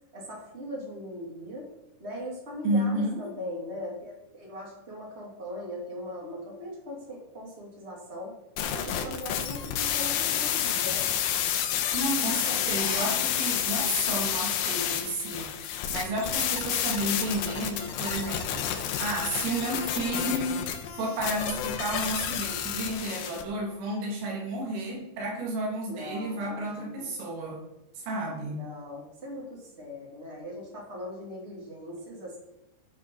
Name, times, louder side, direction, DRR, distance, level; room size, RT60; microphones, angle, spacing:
voice 1, 0.1-1.7 2.0-8.3 8.7-11.1 25.8-27.1 28.6-32.4, left 1 dB, 20° right, -3 dB, 2.0 m, -40 dB
voice 2, 2.6-3.3 11.9-20.7 20.9-27.6 28.0-28.7, right 1 dB, 85° right, -2 dB, 4.9 m, -32 dB
sound 1, 8.6-23.4, left 10 dB, 80° left, 3.4 m, -30 dB
15.0 x 6.4 x 4.0 m, 0.92 s
omnidirectional pair, 5.7 m